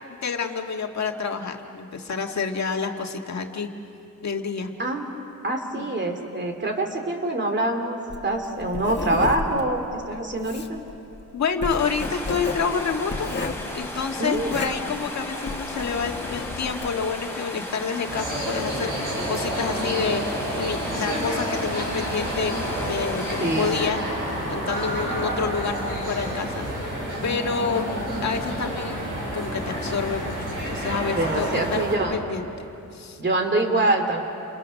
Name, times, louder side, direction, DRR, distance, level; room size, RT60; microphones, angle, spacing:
voice 1, 0.1-3.7 4.2-4.7 5.7-6.1 11.3-13.3 13.7-22.5 22.9-24.0 24.5-29.0 29.3-31.8 32.1-33.2, left 5 dB, 60° left, 3 dB, 1.7 m, -28 dB
voice 2, 5.4-8.0 8.2-10.8 14.2-14.7 23.4-23.7 31.1-32.2 33.2-34.2, right 2 dB, 35° right, 4 dB, 2.6 m, -25 dB
Writing, 8.1-17.1, left 3 dB, 35° left, 1.6 m, -33 dB
sound 1, 11.8-23.9, left 1 dB, 5° left, 3.8 m, -35 dB
sound 2, 18.1-32.0, equal, 85° right, 7.9 m, -29 dB
30.0 x 28.5 x 6.4 m, 2.8 s
wide cardioid pair, 180°, 31 cm